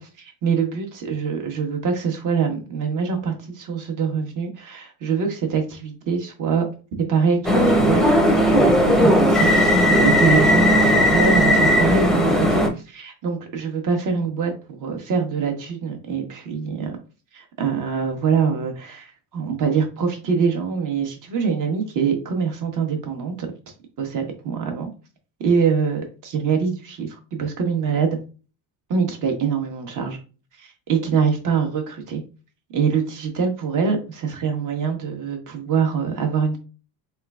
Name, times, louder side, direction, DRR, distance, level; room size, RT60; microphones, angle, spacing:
voice 1, 0.0-6.7 6.9-17.0 17.3-23.5 24.0-24.9 25.4-28.2 28.9-30.2 30.6-32.2 32.7-36.6, right 6 dB, 45° right, 3 dB, 1.2 m, -24 dB
sound 1, 7.4-12.7, equal, ahead, 0.7 m, -16 dB
3.7 x 3.3 x 2.3 m, 0.34 s
cardioid pair, 115°, 43 cm